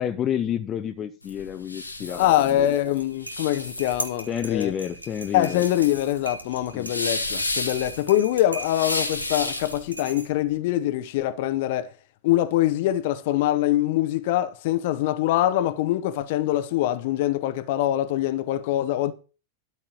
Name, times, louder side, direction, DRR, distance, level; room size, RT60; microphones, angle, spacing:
voice 1, 0.0-2.7 4.3-5.6 6.7-6.9, left 9 dB, 30° left, 0.7 m, -29 dB
sound 1, 1.2-9.9, left 2 dB, 85° left, 1.4 m, -32 dB
voice 2, 2.1-4.7 5.3-11.9 12.2-19.1, left 13 dB, 50° left, 0.9 m, -24 dB
sound 2, 2.9-10.6, right 1 dB, 85° right, 1.2 m, -39 dB
12.5 x 4.4 x 7.3 m
figure-of-eight pair, 90°, 0 cm